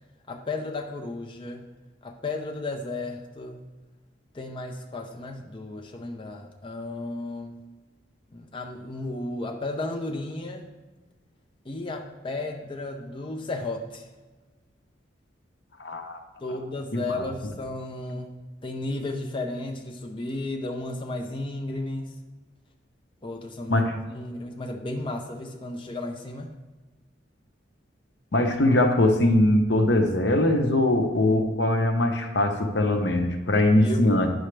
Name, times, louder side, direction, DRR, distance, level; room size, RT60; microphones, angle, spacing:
voice 1, 0.3-1.7 2.0-3.6 4.3-7.6 8.3-10.7 11.6-14.1 16.4-18.4 18.6-22.1 23.2-26.5 33.8-34.0, left 2 dB, 30° left, 2 dB, 0.6 m, -34 dB
voice 2, 15.8-16.2 16.5-16.6 16.9-17.2 23.7-24.0 28.3-34.3, left 1 dB, 65° left, 5 dB, 0.8 m, -22 dB
10.0 x 6.3 x 3.3 m, 1.2 s
head